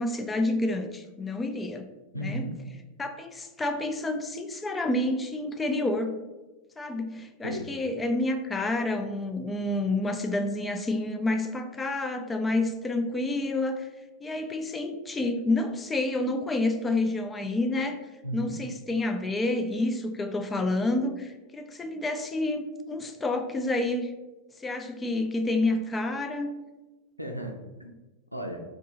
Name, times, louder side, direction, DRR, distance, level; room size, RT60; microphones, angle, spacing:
voice 1, 0.0-1.9 2.2-2.4 3.0-6.2 6.8-13.9 14.2-18.0 18.3-24.1 24.6-26.5, left 2 dB, 15° left, 6 dB, 0.3 m, -29 dB
voice 2, 2.1-2.6 7.4-7.7 18.2-18.6 27.2-28.0 28.3-28.6, right 1 dB, 90° right, 2 dB, 0.4 m, -35 dB
2.7 x 2.4 x 3.7 m, 1.1 s
figure-of-eight pair, 90°, 0 cm